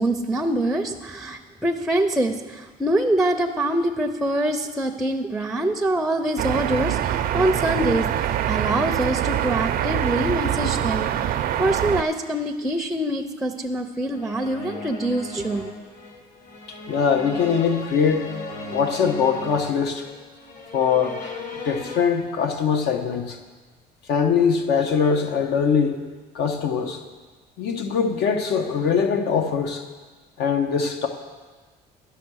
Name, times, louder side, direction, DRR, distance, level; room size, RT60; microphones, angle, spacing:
voice 1, 0.0-15.7, right 1 dB, 5° right, 5 dB, 0.5 m, -25 dB
sound 1, 6.4-12.0, right 11 dB, 60° right, 0.5 m, -24 dB
sound 2, 14.1-22.0, left 2 dB, 50° left, 1.4 m, -37 dB
voice 2, 16.9-18.3 18.7-20.0 20.7-21.4 21.6-23.4 24.1-26.0 26.3-27.0 27.6-29.8 30.4-31.1, left 6 dB, 80° left, 5 dB, 1.1 m, -22 dB
10.5 x 5.8 x 6.2 m, 1.3 s
cardioid pair, 110°, 17 cm